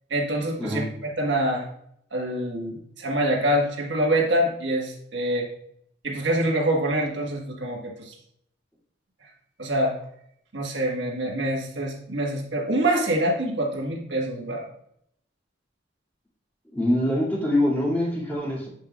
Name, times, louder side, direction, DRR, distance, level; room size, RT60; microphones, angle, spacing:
voice 1, 0.1-1.6 2.1-5.5 6.0-8.1 9.6-9.9 10.5-14.7, right 1 dB, 85° right, -1 dB, 1.4 m, -25 dB
voice 2, 16.7-18.7, left 1 dB, 10° left, -6 dB, 2.1 m, -24 dB
7.6 x 5.5 x 2.3 m, 0.70 s
head